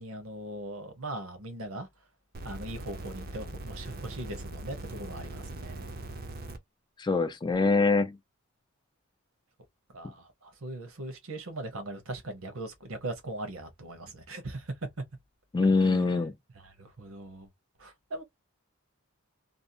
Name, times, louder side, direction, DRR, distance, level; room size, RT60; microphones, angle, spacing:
voice 1, 0.0-1.9 2.4-5.9 9.9-14.7 15.8-16.2 16.6-17.5 17.8-18.2, right 2 dB, 70° right, 0.9 m, -40 dB
sound 1, 2.3-6.6 7.5-7.6, right 2 dB, 45° right, 0.5 m, -41 dB
voice 2, 7.0-8.2 15.5-16.3, left 3 dB, 20° left, 0.3 m, -24 dB
2.6 x 2.0 x 2.6 m
head